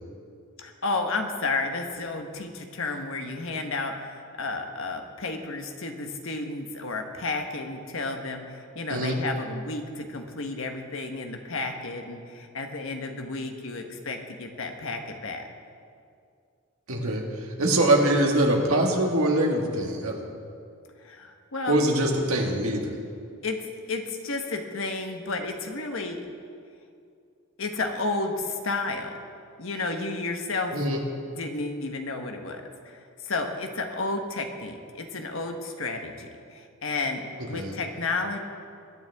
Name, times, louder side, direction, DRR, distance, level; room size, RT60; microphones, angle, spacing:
voice 1, 0.6-15.4 21.0-21.8 23.4-23.6 23.9-26.2 27.6-29.1 29.6-30.7 31.3-38.4, left 3 dB, 65° left, 4 dB, 1.2 m, -32 dB
voice 2, 16.9-20.2 21.7-23.0 30.7-31.0 37.5-37.7, right 1 dB, 75° right, 0 dB, 1.8 m, -23 dB
21.5 x 9.6 x 3.6 m, 2.4 s
head